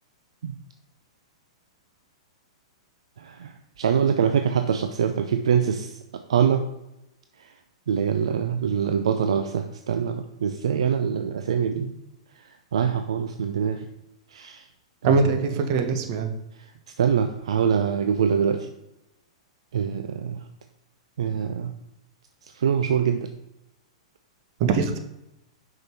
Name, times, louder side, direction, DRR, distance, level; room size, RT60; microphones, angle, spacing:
voice 1, 3.2-5.9 6.3-6.7 7.9-11.9 12.7-13.8 14.3-14.6 15.0-15.2 15.5-15.6 17.0-18.7 19.7-20.4 21.2-21.7 22.6-23.3, right 7 dB, 70° right, 7 dB, 0.5 m, -24 dB
voice 2, 15.0-16.3 24.6-25.0, right 4 dB, 50° right, 7 dB, 1.0 m, -22 dB
5.7 x 5.3 x 4.5 m, 0.88 s
hypercardioid pair, 110°, 3 cm